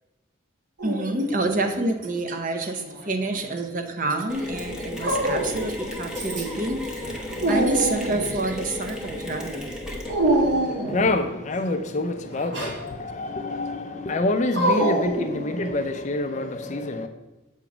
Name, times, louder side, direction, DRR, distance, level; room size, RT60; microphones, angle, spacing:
voice 1, 0.8-7.1 7.5-9.7, right 2 dB, 40° right, 0.6 m, -28 dB
Dog, 0.8-1.6 2.7-3.6 5.0-5.7 6.1-6.7 7.0-8.4 10.1-11.1 12.3-12.8 14.5-15.9, right 1 dB, 60° right, 1.1 m, -26 dB
Mechanisms, 4.3-10.5, left 1 dB, 5° right, 0.8 m, -34 dB
voice 2, 10.4-17.1, left 2 dB, 35° left, 0.4 m, -27 dB
7.1 x 3.0 x 5.9 m
head